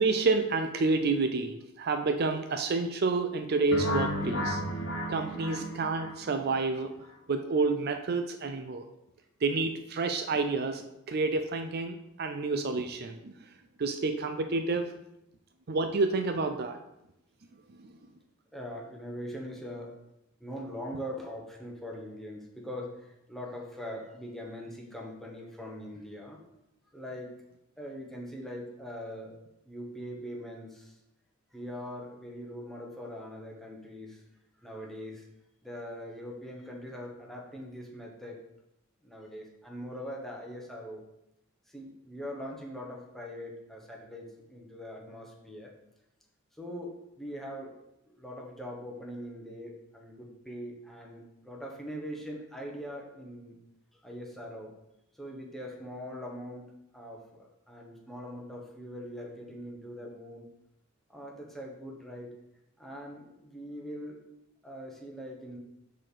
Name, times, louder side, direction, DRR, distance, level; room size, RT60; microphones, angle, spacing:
voice 1, 0.0-4.6 5.1-6.9 7.3-8.9 9.4-13.5 13.8-14.9 15.7-16.8 17.8-17.9, right 3 dB, 50° right, 7 dB, 0.5 m, -29 dB
sound 1, 3.7-6.6, left 1 dB, 60° left, 1.2 m, -33 dB
voice 2, 18.5-20.0 20.4-26.4 26.9-27.4 27.8-29.4 29.6-30.9 31.5-34.2 34.6-35.3 35.6-38.4 39.0-41.1 41.7-45.7 46.6-53.5 54.0-54.7 55.2-60.4 61.1-62.4 62.8-64.2 64.6-65.6, equal, ahead, -2 dB, 1.2 m, -42 dB
6.4 x 4.2 x 6.3 m, 0.85 s
head